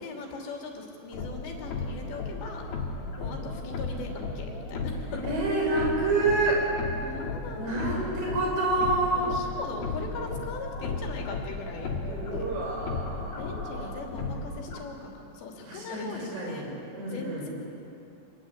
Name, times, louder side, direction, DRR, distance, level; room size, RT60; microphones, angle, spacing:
voice 1, 0.0-2.7 3.2-5.2 7.0-8.2 9.1-12.5 13.4-16.7 17.1-17.5, left 3 dB, 85° left, 0 dB, 5.3 m, -40 dB
sound 1, 1.1-14.8, left 3 dB, 65° left, 4.3 m, -35 dB
voice 2, 5.2-6.6 7.6-9.3 12.1-13.9 15.6-16.7 16.9-17.5, right 2 dB, 85° right, -2 dB, 8.9 m, -28 dB
27.0 x 21.0 x 9.8 m, 2.7 s
omnidirectional pair, 4.9 m